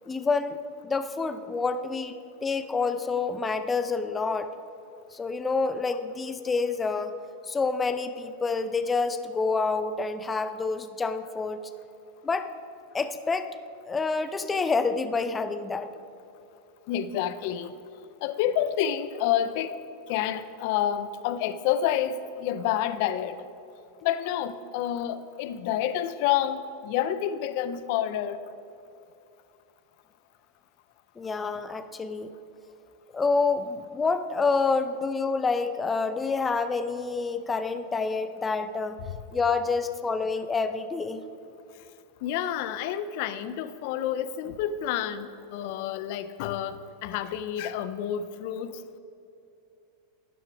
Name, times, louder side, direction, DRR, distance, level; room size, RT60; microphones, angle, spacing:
voice 1, 0.1-0.6 0.8-4.5 5.1-7.1 7.5-11.6 12.2-12.5 12.9-13.5 13.9-15.9 31.2-32.3 33.1-39.0 39.3-41.2, left 4 dB, 15° left, 10 dB, 0.6 m, -28 dB
voice 2, 16.9-17.7 18.2-19.8 20.1-23.4 24.0-28.4 42.2-48.7, left 10 dB, 60° left, 13 dB, 0.5 m, -29 dB
12.0 x 10.0 x 3.5 m, 2.7 s
hypercardioid pair, 120°, 0 cm